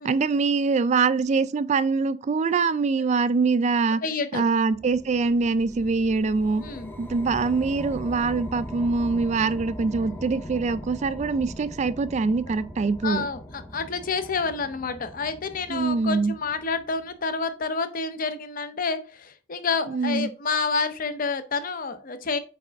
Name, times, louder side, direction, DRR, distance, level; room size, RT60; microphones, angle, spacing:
voice 1, 0.0-4.0 4.3-6.6 7.0-13.3 15.7-16.3 19.9-20.3, right 4 dB, 40° right, 0.3 m, -24 dB
voice 2, 4.0-4.4 6.6-6.9 13.0-22.4, left 4 dB, 50° left, 0.7 m, -29 dB
sound 1, 4.7-17.2, left 1 dB, 10° left, 0.6 m, -40 dB
8.4 x 3.4 x 3.4 m
head